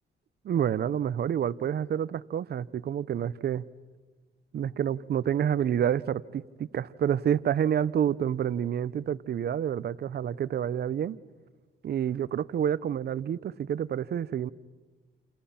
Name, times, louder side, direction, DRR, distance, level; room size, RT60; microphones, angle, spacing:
voice 1, 0.4-3.6 4.5-11.2 11.8-14.5, right 9 dB, 55° right, 18 dB, 0.8 m, -28 dB
29.0 x 28.5 x 5.8 m, 1.3 s
cardioid pair, 90°, 20 cm